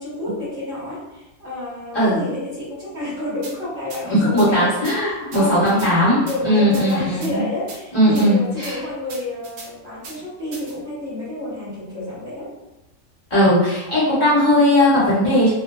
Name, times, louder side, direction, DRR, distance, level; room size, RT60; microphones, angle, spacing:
voice 1, 0.0-4.8 5.0-5.6 6.2-12.5, left 1 dB, 50° right, -10 dB, 1.2 m, -30 dB
sound 1, 3.4-3.5 3.9-4.0 4.4-4.5 4.8-5.0 5.3-5.9 6.3-6.4 6.7-7.3 7.7-7.8 8.2-8.3 8.6-8.7 9.1-9.7 10.0-10.2 10.5-10.7, right 3 dB, 75° right, 1.1 m, -37 dB
voice 2, 4.1-7.4 7.9-8.8 13.3-15.5, equal, 30° left, -11 dB, 1.2 m, -17 dB
2.6 x 2.2 x 2.2 m, 0.96 s
omnidirectional pair, 1.6 m